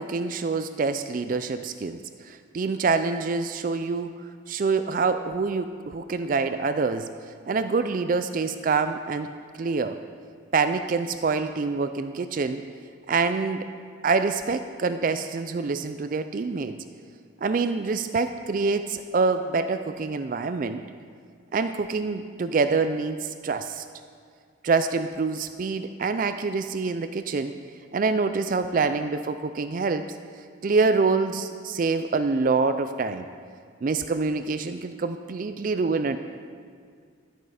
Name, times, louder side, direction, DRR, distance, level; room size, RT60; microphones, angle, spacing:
voice 1, 0.0-7.1 7.5-9.3 9.6-10.0 10.5-12.6 13.1-13.6 14.0-16.8 17.4-20.8 21.5-23.8 24.6-27.5 27.9-30.1 30.6-33.3 33.8-36.2, right 4 dB, 40° right, 10 dB, 0.3 m, -26 dB
11.0 x 9.4 x 4.9 m, 2.1 s
head